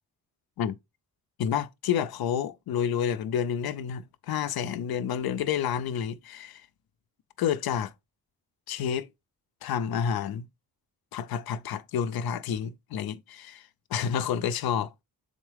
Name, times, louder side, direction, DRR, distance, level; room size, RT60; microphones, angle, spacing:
voice 1, 1.4-6.6 7.4-7.9 8.7-9.1 9.6-10.5 11.1-14.9, left 8 dB, 85° left, 0.5 m, -29 dB
3.8 x 3.6 x 3.3 m
cardioid pair, 75°, 36 cm